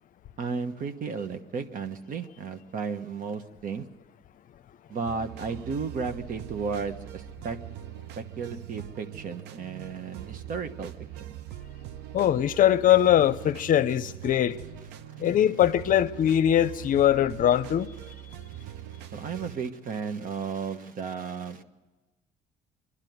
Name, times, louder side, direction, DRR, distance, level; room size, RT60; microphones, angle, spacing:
voice 1, 0.4-3.8 4.9-7.6 8.2-10.9 11.2-11.3 18.6-18.7 19.1-21.6, right 5 dB, 55° right, 1.3 m, -34 dB
sound 1, 5.0-19.6, right 12 dB, 85° right, 0.7 m, -42 dB
voice 2, 12.1-14.6 15.2-17.9, left 11 dB, 55° left, 0.7 m, -22 dB
25.0 x 11.5 x 9.4 m
cardioid pair, 110°, 17 cm